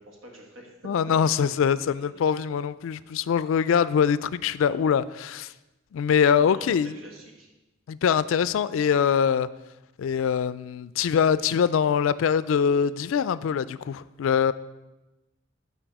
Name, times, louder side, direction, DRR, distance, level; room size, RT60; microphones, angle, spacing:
voice 1, 0.0-0.9 1.6-1.7 6.4-7.5, right 1 dB, 80° right, 0 dB, 1.7 m, -46 dB
voice 2, 0.8-5.5 5.9-6.9 7.9-9.5 10.0-14.5, left 7 dB, 75° left, 17 dB, 0.3 m, -23 dB
11.5 x 4.2 x 4.7 m, 1.0 s
head